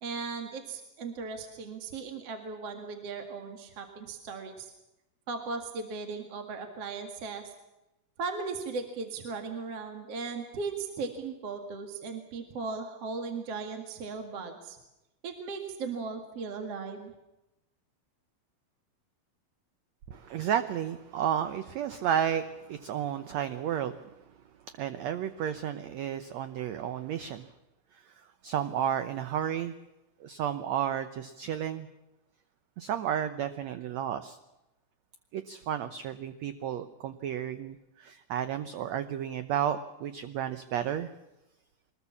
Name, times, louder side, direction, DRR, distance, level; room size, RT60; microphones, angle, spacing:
voice 1, 0.0-4.7 5.3-7.5 8.2-14.8 15.2-17.1, right 4 dB, 50° right, 5 dB, 2.8 m, -37 dB
voice 2, 20.1-24.2 24.7-27.5 27.9-29.7 30.2-31.9 32.8-34.4 35.3-41.1, right 9 dB, 70° right, 11 dB, 1.8 m, -32 dB
23.5 x 21.0 x 7.2 m, 0.96 s
omnidirectional pair, 4.1 m